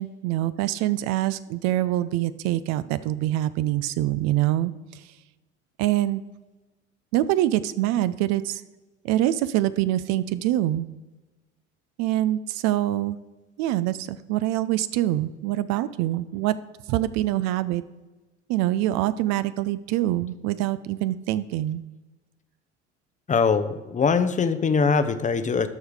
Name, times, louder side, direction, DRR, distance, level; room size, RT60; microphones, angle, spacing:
voice 1, 0.0-5.1 5.8-6.2 7.1-8.6 9.0-10.9 12.0-13.2 13.6-16.5 16.9-17.8 18.5-21.8, right 14 dB, 50° right, 15 dB, 0.5 m, -25 dB
voice 2, 23.3-25.7, left 5 dB, 20° left, 12 dB, 0.7 m, -22 dB
13.0 x 4.8 x 4.8 m, 1.1 s
figure-of-eight pair, 65°, 35 cm